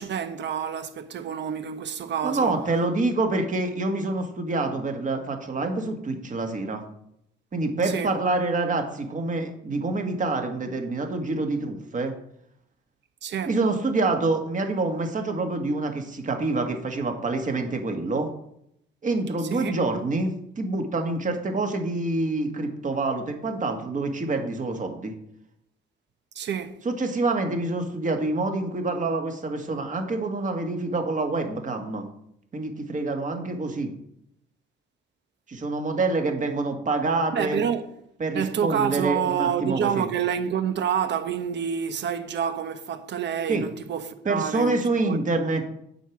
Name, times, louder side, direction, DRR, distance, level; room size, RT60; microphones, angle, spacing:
voice 1, 0.0-2.6 7.8-8.2 13.2-13.6 19.5-19.8 26.3-26.7 37.3-37.9 38.3-45.2 45.5-45.7, right 8 dB, 65° right, 1.1 m, -28 dB
voice 2, 2.2-6.8 7.5-12.1 13.5-18.3 19.0-25.1 26.9-32.1 32.5-33.9 35.5-37.6 38.2-40.1 43.5-43.6 44.3-45.7, right 3 dB, 40° right, 1.9 m, -26 dB
8.9 x 4.8 x 7.2 m
cardioid pair, 90°, 20 cm